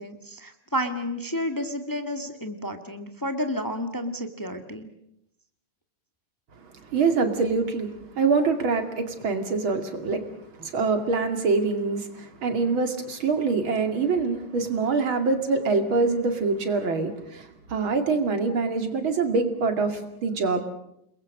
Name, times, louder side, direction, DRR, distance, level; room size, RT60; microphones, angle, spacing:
voice 1, 0.0-4.9, equal, 10° left, 7 dB, 1.7 m, -31 dB
voice 2, 6.7-10.3 10.5-20.6, right 4 dB, 75° right, 7 dB, 3.3 m, -25 dB
29.5 x 21.5 x 6.5 m, 0.78 s
omnidirectional pair, 2.2 m